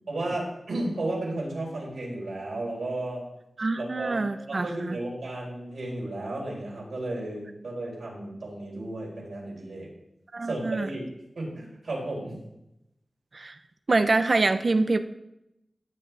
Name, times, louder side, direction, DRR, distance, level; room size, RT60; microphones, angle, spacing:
voice 1, 0.1-3.2 3.8-9.9 10.4-11.0 11.4-12.4, right 2 dB, 85° right, -3 dB, 4.1 m, -33 dB
voice 2, 3.6-5.0 10.3-10.9 13.3-13.5 13.9-15.0, right 3 dB, 55° right, 10 dB, 0.7 m, -25 dB
15.5 x 7.1 x 3.4 m, 0.86 s
wide cardioid pair, 60°, 0 cm